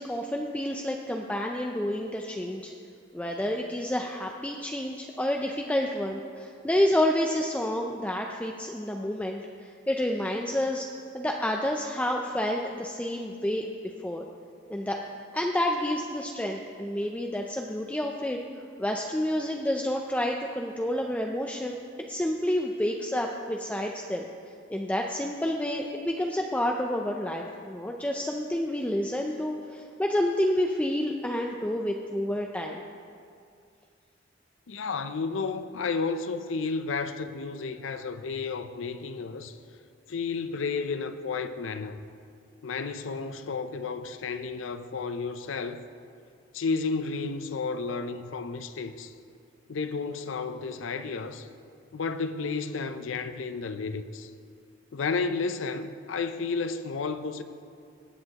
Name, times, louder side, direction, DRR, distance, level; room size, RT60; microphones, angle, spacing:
voice 1, 0.0-2.7 3.1-10.9 11.1-13.7 14.0-14.3 14.7-15.0 15.3-18.4 18.8-24.3 24.7-32.8, left 1 dB, 5° left, 0.4 m, -29 dB
voice 2, 34.7-39.6 40.1-42.0 42.6-45.8 46.5-49.1 49.7-51.5 51.9-54.3 54.9-57.4, left 4 dB, 80° left, 0.5 m, -32 dB
20.0 x 7.7 x 3.0 m
head